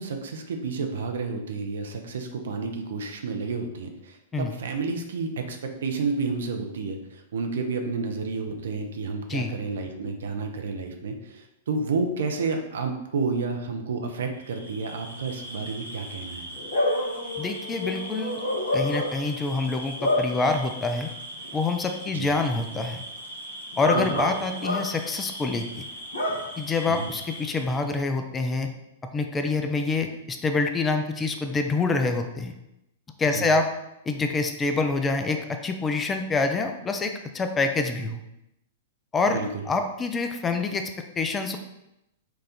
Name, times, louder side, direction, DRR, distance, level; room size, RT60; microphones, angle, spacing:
voice 1, 0.0-16.4 22.1-22.4 23.9-24.1 26.9-27.1 33.2-33.5 39.3-39.5, right 4 dB, 60° right, 4 dB, 0.6 m, -30 dB
Bark / Cricket, 14.5-27.8, left 1 dB, 65° left, 1.2 m, -32 dB
voice 2, 17.4-18.4 18.7-21.1 21.5-23.0 23.8-25.9 26.6-28.7 29.1-32.6 33.2-33.7 34.1-38.2 39.1-39.4 39.7-40.8 41.2-41.6, left 3 dB, 15° left, 6 dB, 0.4 m, -26 dB
4.6 x 2.5 x 4.1 m, 0.87 s
figure-of-eight pair, 105°, 0 cm